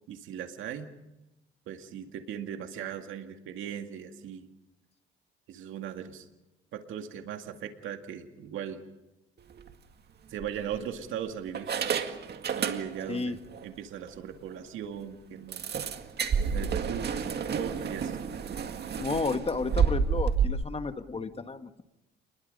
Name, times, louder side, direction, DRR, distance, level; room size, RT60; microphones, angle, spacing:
voice 1, 0.1-0.9 1.7-4.5 5.5-6.3 6.7-8.8 10.3-11.9 12.5-15.6 16.5-18.2, right 9 dB, 85° right, 5 dB, 2.0 m, -38 dB
sound 1, 9.5-9.7 10.4-11.1 11.5-13.2 13.5-13.7 14.1-14.2 14.5-14.6 15.5-20.5, right 6 dB, 55° right, 2.0 m, -30 dB
voice 2, 19.0-21.8, left 4 dB, 30° left, 9 dB, 1.6 m, -32 dB
29.5 x 21.5 x 5.4 m, 0.98 s
cardioid pair, 90°, 20 cm